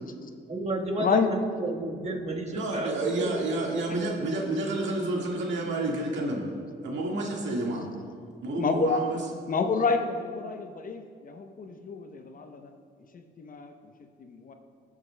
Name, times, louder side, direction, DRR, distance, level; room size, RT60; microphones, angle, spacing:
voice 1, 0.5-3.6, right 2 dB, 35° right, 0 dB, 1.4 m, -31 dB
voice 2, 2.5-6.5 6.8-7.9 8.4-9.3, right 2 dB, 70° right, -1 dB, 1.8 m, -30 dB
voice 3, 8.6-9.2 9.5-12.6 13.4-13.7 14.3-14.5, left 4 dB, 45° left, 6 dB, 0.7 m, -28 dB
17.5 x 7.4 x 2.2 m, 2.2 s
cardioid pair, 90°, 20 cm